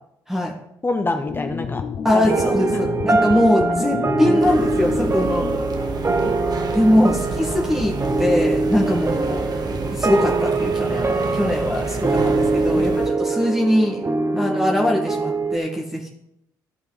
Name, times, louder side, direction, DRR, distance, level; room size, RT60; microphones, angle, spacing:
voice 1, 0.8-1.8 2.1-2.8 4.3-4.5 6.2-7.1 7.5-7.8 12.7-13.0 14.3-14.4, left 2 dB, 25° left, 6 dB, 1.1 m, -29 dB
sound 1, 1.2-6.6 7.1-7.2 7.4-7.5 7.7-8.5 8.8-13.0, left 6 dB, 50° left, 0.7 m, -33 dB
voice 2, 2.0-5.5 6.7-9.4 9.9-14.0 14.4-16.1, left 1 dB, 5° right, -1 dB, 1.9 m, -21 dB
sound 2, 2.3-15.6, right 3 dB, 30° right, 0.9 m, -23 dB
sound 3, 4.4-13.1, right 3 dB, 45° right, 1.6 m, -30 dB
13.5 x 5.5 x 4.2 m, 0.78 s
hypercardioid pair, 50°, 9 cm